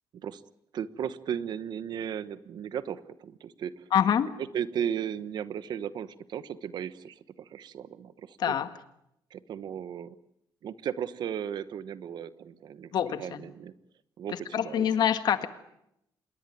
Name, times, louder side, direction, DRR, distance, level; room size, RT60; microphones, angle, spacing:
voice 1, 0.7-3.8 4.5-8.5 9.3-10.2 10.6-13.7 14.2-14.9, right 8 dB, 60° right, 15 dB, 1.1 m, -36 dB
voice 2, 3.9-4.3 8.4-8.7 12.9-13.4 14.3-15.5, left 9 dB, 60° left, 10 dB, 1.8 m, -26 dB
27.0 x 21.5 x 9.2 m, 0.81 s
cardioid pair, 160°, 8 cm